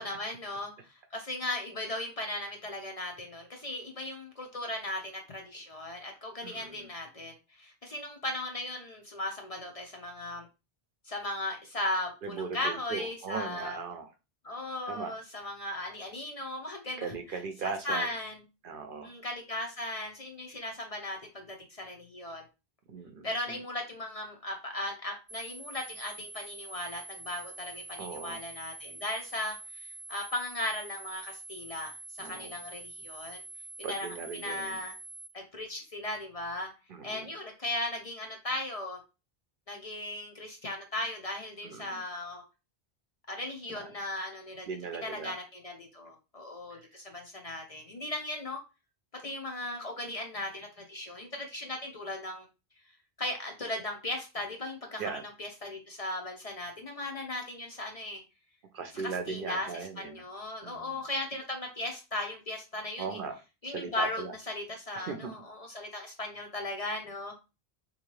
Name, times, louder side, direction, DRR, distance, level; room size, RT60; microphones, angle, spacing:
voice 1, 0.0-10.5 11.0-13.8 14.4-18.4 19.0-22.4 23.2-31.9 32.2-33.4 33.8-34.9 35.3-36.7 37.0-39.0 39.7-42.4 43.3-48.6 49.1-52.5 53.2-58.2 59.0-59.7 60.0-63.2 63.6-67.3, left 1 dB, 45° left, 2 dB, 0.6 m, -37 dB
voice 2, 6.4-6.9 12.2-14.1 14.9-15.1 17.0-18.1 18.6-19.1 22.9-23.6 28.0-28.4 32.2-32.5 33.8-34.8 36.9-37.3 41.6-42.0 43.7-43.9 44.7-45.4 46.7-46.8 55.0-55.2 58.7-60.2 60.6-61.0 63.0-64.3 64.9-65.4, right 5 dB, 65° right, 7 dB, 0.7 m, -38 dB
sound 1, 25.3-35.3, right 2 dB, 15° right, 0.9 m, -46 dB
3.6 x 2.8 x 3.1 m, 0.29 s
omnidirectional pair, 1.1 m